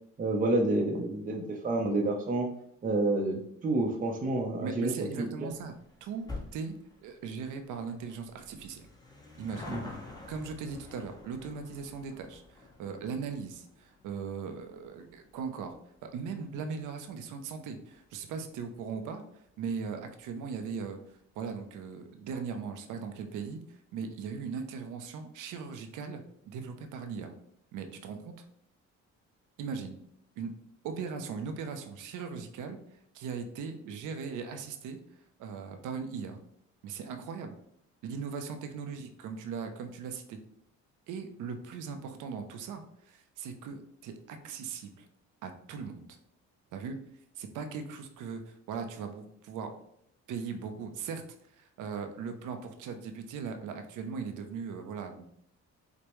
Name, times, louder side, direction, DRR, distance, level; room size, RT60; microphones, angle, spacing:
voice 1, 0.2-2.5 2.8-4.9 5.2-5.5 9.7-9.8, right 2 dB, 30° right, 2 dB, 0.6 m, -29 dB
voice 2, 4.6-5.7 6.0-6.8 7.0-8.9 9.4-9.8 10.3-15.8 16.0-19.2 19.6-27.3 27.7-28.3 29.6-30.0 30.4-30.5 30.8-35.0 35.4-36.4 36.8-37.5 38.0-40.4 41.1-45.1 45.4-46.1 46.7-47.0 47.4-49.7 50.3-51.2 51.6-55.3, right 5 dB, 85° right, 6 dB, 0.6 m, -39 dB
sound 1, 5.5-18.3 18.6-18.7 19.5-19.6 19.8-19.9 20.2-20.3, left 2 dB, 15° left, 0.9 m, -49 dB
5.1 x 2.1 x 3.0 m, 0.71 s
cardioid pair, 90°, 30 cm